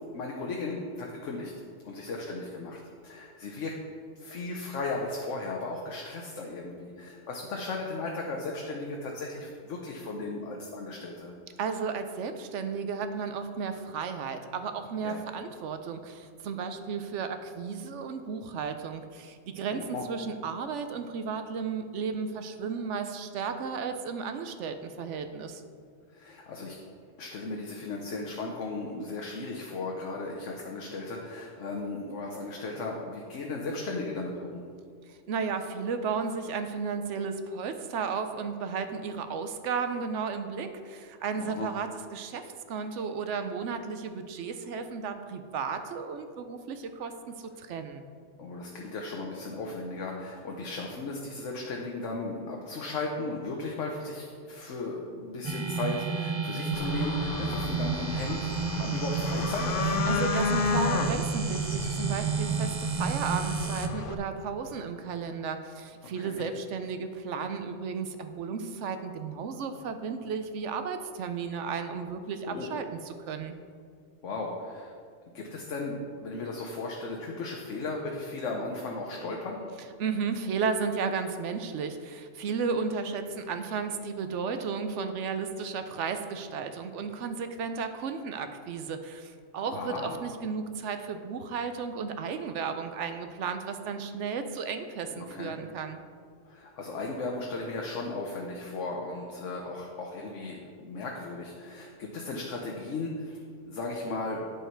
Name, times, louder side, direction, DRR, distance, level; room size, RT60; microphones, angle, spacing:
voice 1, 0.1-1.5 1.8-3.8 4.2-11.3 15.0-15.2 19.7-20.1 26.1-26.8 27.2-34.6 41.4-41.7 48.4-60.0 66.2-66.5 72.5-72.7 74.2-74.9 75.3-79.6 89.7-90.2 95.2-95.6 96.5-104.5, left 3 dB, 80° left, -1 dB, 1.2 m, -36 dB
voice 2, 11.6-25.6 35.1-48.0 60.1-73.5 80.0-96.0, right 5 dB, 75° right, 8 dB, 0.9 m, -34 dB
sound 1, 55.4-63.9, right 5 dB, 40° right, 0.4 m, -31 dB
sound 2, 56.7-64.1, left 4 dB, 55° left, 0.7 m, -33 dB
9.0 x 6.6 x 4.5 m, 2.1 s
omnidirectional pair, 1.3 m